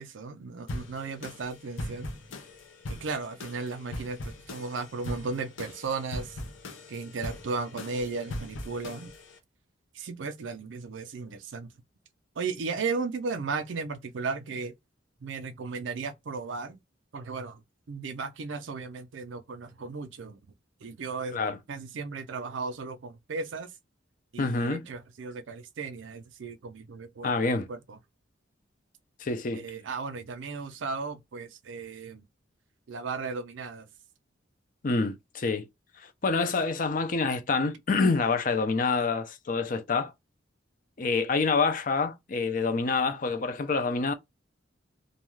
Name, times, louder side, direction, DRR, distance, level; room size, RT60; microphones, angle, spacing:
voice 1, 0.0-2.1 2.9-6.4 6.9-9.1 9.9-11.7 12.4-14.7 15.2-16.8 17.1-17.6 17.9-20.4 20.8-21.4 21.7-23.7 24.3-27.4 27.7-28.0 29.5-32.2 32.9-33.9, right 4 dB, 75° right, 0.5 m, -35 dB
sound 1, 0.7-9.4, left 1 dB, 85° left, 0.7 m, -40 dB
voice 2, 24.4-24.8 27.2-27.7 29.2-29.6 34.8-35.7 36.0-40.1 41.0-44.1, left 4 dB, 45° left, 0.5 m, -27 dB
2.6 x 2.3 x 3.1 m
head